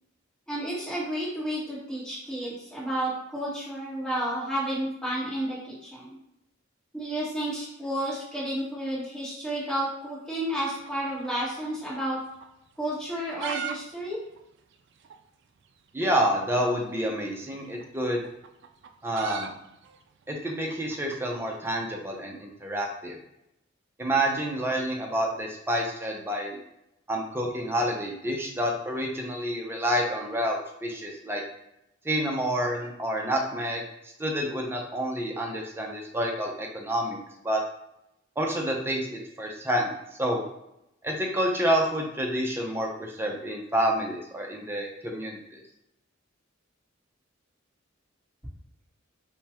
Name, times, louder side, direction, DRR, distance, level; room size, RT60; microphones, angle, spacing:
voice 1, 0.5-6.2 6.9-12.2 12.8-14.2, right 1 dB, 5° left, -8 dB, 1.5 m, -31 dB
sound 1, 10.8-12.1 12.4-12.5 13.0-13.8 14.0-14.1 14.3-14.4 15.0-15.1 16.3-16.5 17.6-21.9, right 7 dB, 60° right, 0.4 m, -38 dB
voice 2, 15.9-18.2 19.0-19.5 20.3-23.2 24.0-26.6 27.1-31.4 32.0-37.2 37.4-37.6 38.4-39.9 40.2-40.4 41.0-45.6, equal, 10° right, 0 dB, 0.6 m, -28 dB
5.1 x 2.3 x 2.9 m, 0.83 s
head